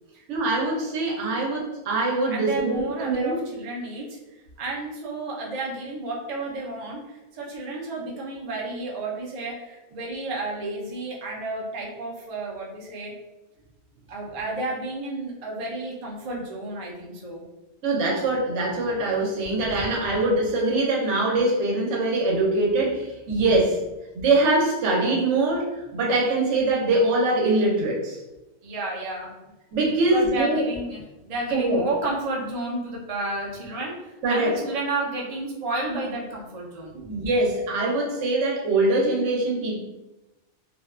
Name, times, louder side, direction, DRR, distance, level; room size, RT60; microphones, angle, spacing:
voice 1, 0.3-3.4 17.8-23.8 24.1-28.2 29.7-30.6 31.5-31.9 34.2-34.5 36.9-39.8, right 2 dB, 80° right, -3 dB, 1.0 m, -23 dB
voice 2, 2.3-4.2 4.6-13.1 14.1-17.4 19.7-19.8 28.6-29.3 30.1-33.9 34.3-37.0, right 2 dB, 50° right, -3 dB, 0.5 m, -31 dB
2.5 x 2.2 x 2.3 m, 1.0 s
omnidirectional pair, 1.2 m